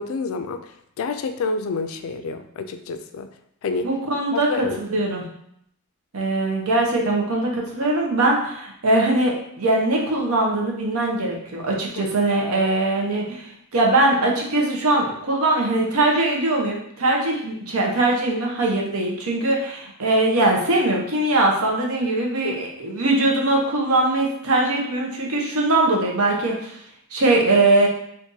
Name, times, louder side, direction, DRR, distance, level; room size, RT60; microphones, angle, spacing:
voice 1, 0.0-3.3 3.6-3.9 4.3-4.8 12.0-12.1 22.4-22.6, left 4 dB, 70° left, 8 dB, 0.3 m, -29 dB
voice 2, 3.8-5.2 6.1-13.4 13.7-26.7 27.1-27.9, right 2 dB, 85° right, -1 dB, 0.8 m, -21 dB
2.7 x 2.6 x 3.7 m, 0.71 s
head